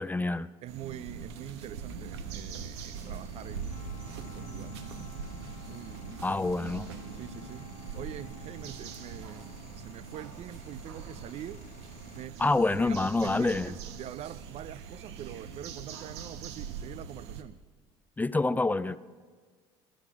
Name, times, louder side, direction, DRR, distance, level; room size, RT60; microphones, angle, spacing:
voice 1, 0.0-0.5 6.2-6.9 12.4-13.7 18.2-19.0, left 2 dB, 10° left, 0.4 m, -27 dB
voice 2, 0.6-5.0 5.6-6.4 7.1-11.7 12.1-12.6 12.8-17.6 18.8-19.0, right 12 dB, 50° right, 0.4 m, -44 dB
sound 1, 0.7-17.4, right 6 dB, 80° right, 1.0 m, -42 dB
sound 2, 2.9-12.3, left 7 dB, 65° left, 1.1 m, -55 dB
Wind instrument woodwind instrument, 3.6-9.8, left 7 dB, 90° left, 0.6 m, -54 dB
19.0 x 9.9 x 4.7 m
hypercardioid pair, 70°, 14 cm